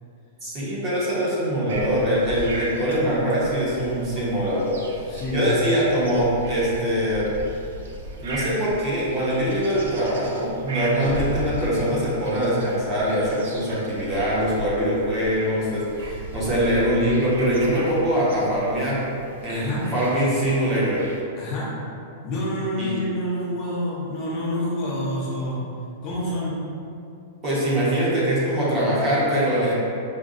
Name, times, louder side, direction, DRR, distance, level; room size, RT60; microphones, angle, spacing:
voice 1, 0.4-4.8 5.0-7.3 8.2-19.0 19.4-21.0 22.8-23.0 27.4-29.7, equal, 25° right, -8 dB, 0.9 m, -23 dB
sound 1, 1.7-21.2, right 1 dB, 90° right, 0.5 m, -37 dB
voice 2, 5.1-5.5 11.0-11.1 19.5-19.9 21.4-21.7 22.2-25.7 26.0-26.6, left 1 dB, 30° left, -6 dB, 0.6 m, -27 dB
5.1 x 2.2 x 2.5 m, 2.5 s
supercardioid pair, 165°, 0 cm